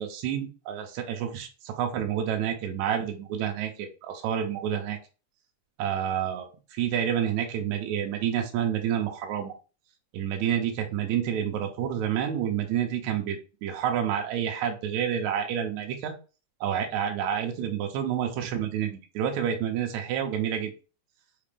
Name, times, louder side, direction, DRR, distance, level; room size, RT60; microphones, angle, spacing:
voice 1, 0.0-5.0 5.8-9.5 10.1-16.1 16.6-20.7, right 9 dB, 80° right, 3 dB, 1.9 m, -29 dB
5.8 x 2.4 x 3.4 m, 0.33 s
omnidirectional pair, 3.5 m